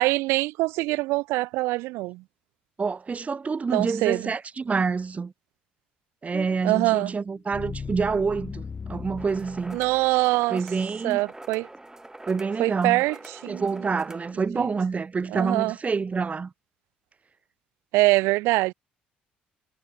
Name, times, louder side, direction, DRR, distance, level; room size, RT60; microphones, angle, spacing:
voice 1, 0.0-2.2 3.7-4.3 6.6-7.1 9.7-10.6 11.0-11.7 12.6-13.2 13.4-13.6 14.6-14.7 15.3-15.7 17.9-18.7, right 21 dB, 65° right, 1.3 m, -23 dB
voice 2, 2.8-5.3 6.2-8.6 8.9-9.8 10.5-11.2 12.3-13.0 13.5-16.5, right 5 dB, 30° right, 2.9 m, -27 dB
sound 1, 6.3-10.4, left 5 dB, 30° left, 2.2 m, -39 dB
sound 2, 9.2-14.3, right 2 dB, 10° right, 7.3 m, -45 dB
figure-of-eight pair, 50°, 5 cm